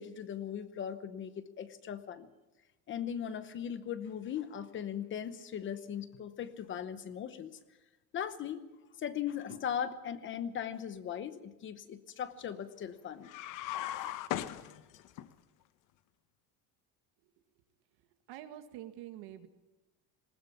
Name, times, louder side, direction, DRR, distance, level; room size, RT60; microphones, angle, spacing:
voice 1, 0.0-2.3 2.9-7.6 8.1-8.6 9.0-13.3, left 9 dB, 30° left, 12 dB, 0.9 m, -39 dB
sound 1, 13.2-15.3, left 12 dB, 50° left, 1.0 m, -38 dB
voice 2, 18.3-19.5, right 12 dB, 70° right, 8 dB, 1.9 m, -46 dB
20.0 x 19.0 x 7.1 m, 1.1 s
cardioid pair, 180°, 39 cm